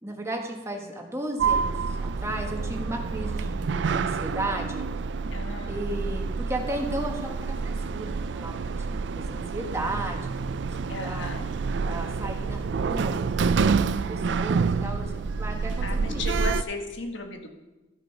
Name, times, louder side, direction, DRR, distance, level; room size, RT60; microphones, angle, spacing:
voice 1, 0.0-4.9 5.7-11.3 11.8-16.3, right 1 dB, 15° right, 2 dB, 1.5 m, -35 dB
Sliding door, 1.4-16.6, right 5 dB, 70° right, 0.4 m, -28 dB
voice 2, 5.3-5.8 10.9-11.5 15.8-17.6, left 2 dB, 80° left, 4 dB, 1.4 m, -35 dB
14.0 x 6.1 x 5.8 m, 1.1 s
head